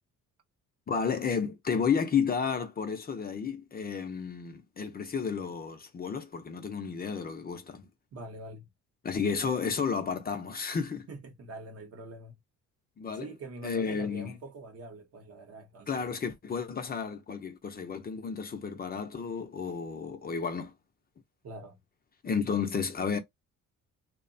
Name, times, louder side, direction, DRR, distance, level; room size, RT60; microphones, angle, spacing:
voice 1, 0.9-7.9 9.0-11.1 13.0-13.3 13.6-14.3 15.9-20.7 22.2-23.2, left 6 dB, 30° left, 0.5 m, -32 dB
voice 2, 8.1-8.7 11.1-12.4 13.1-16.1 21.4-21.8, right 2 dB, 50° right, 0.8 m, -44 dB
2.8 x 2.0 x 2.6 m
cardioid pair, 130°, 31 cm